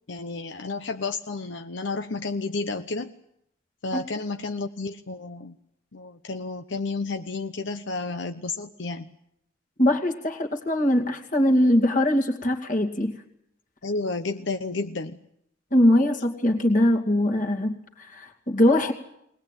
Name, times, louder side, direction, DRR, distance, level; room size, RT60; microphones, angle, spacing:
voice 1, 0.1-3.1 3.8-5.6 5.9-9.1 13.8-15.2, left 3 dB, 75° left, 7 dB, 0.9 m, -31 dB
voice 2, 9.8-13.1 15.7-18.9, left 1 dB, 45° left, 3 dB, 2.4 m, -22 dB
22.0 x 19.5 x 9.1 m, 0.76 s
head